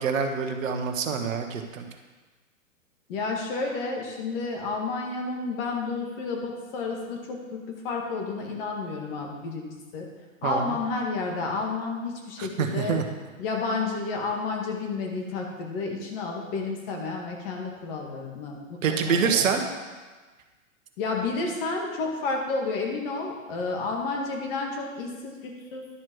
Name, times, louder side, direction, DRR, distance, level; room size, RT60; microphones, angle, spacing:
voice 1, 0.0-1.9 10.4-10.8 12.4-13.0 18.8-19.6, right 6 dB, 70° right, 5 dB, 1.2 m, -26 dB
voice 2, 3.1-10.1 10.4-13.0 13.4-19.7 21.0-25.9, left 3 dB, 45° left, 1 dB, 2.0 m, -31 dB
11.0 x 4.6 x 6.2 m, 1.3 s
hypercardioid pair, 125°, 41 cm